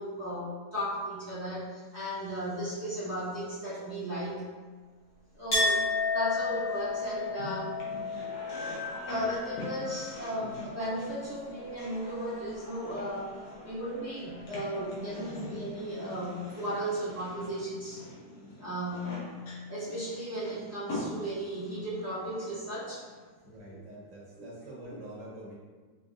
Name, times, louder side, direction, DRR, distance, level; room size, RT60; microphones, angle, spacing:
voice 1, 0.0-4.5 5.3-5.8 6.1-7.8 9.0-13.3 13.6-18.0 18.6-19.4 19.7-23.0 23.7-23.8, equal, 10° right, -11 dB, 1.0 m, -35 dB
Chink clink, 5.5-11.0 11.3-12.2, left 3 dB, 55° left, 1.6 m, -33 dB
sound 1, 5.8-23.3, left 2 dB, 75° left, 1.4 m, -43 dB
voice 2, 23.4-25.5, right 1 dB, 55° right, -6 dB, 1.3 m, -45 dB
4.8 x 2.7 x 2.5 m, 1.4 s
omnidirectional pair, 1.7 m